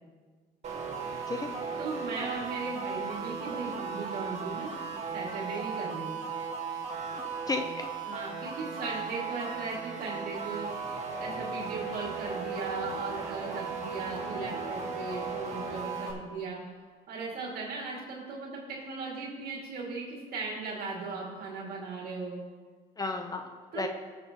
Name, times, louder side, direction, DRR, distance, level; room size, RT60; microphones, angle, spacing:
sound 1, 0.6-16.1, right 5 dB, 40° right, 1.6 m, -36 dB
voice 1, 1.8-4.7 5.1-6.2 8.0-16.6 17.1-22.4 23.7-23.9, right 4 dB, 65° right, -3 dB, 2.1 m, -37 dB
voice 2, 7.1-7.9 14.3-14.6 23.0-23.9, left 3 dB, 20° left, 5 dB, 0.6 m, -34 dB
15.5 x 6.8 x 2.9 m, 1.5 s
cardioid pair, 110°, 17 cm